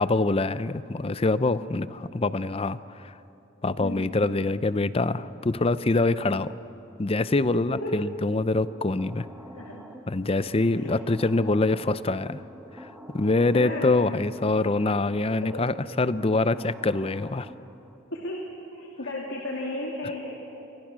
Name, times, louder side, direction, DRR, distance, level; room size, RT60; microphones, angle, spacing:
voice 1, 0.0-3.1 3.6-6.5 7.0-9.2 10.1-12.4 12.8-12.9 13.1-17.5, left 2 dB, 30° left, 15 dB, 0.6 m, -25 dB
voice 2, 3.8-4.1 7.7-8.0 9.6-9.9 10.6-10.9 13.5-13.9 15.4-15.6 18.1-20.3, left 1 dB, 85° left, -1 dB, 2.8 m, -34 dB
sound 1, 8.5-18.0, equal, 5° right, 1.3 m, -47 dB
28.5 x 24.5 x 6.2 m, 2.8 s
head